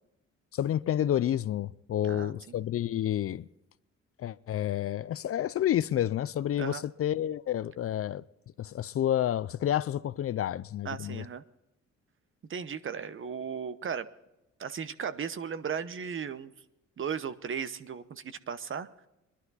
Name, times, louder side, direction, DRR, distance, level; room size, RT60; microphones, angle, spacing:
voice 1, 0.5-3.5 4.2-8.2 8.6-11.2, left 11 dB, 50° left, 0.5 m, -29 dB
voice 2, 2.0-2.6 6.6-6.8 10.8-11.4 12.5-14.1 14.6-16.5 17.0-18.9, right 7 dB, 45° right, 0.9 m, -36 dB
21.0 x 11.5 x 4.1 m
cardioid pair, 90°, 30 cm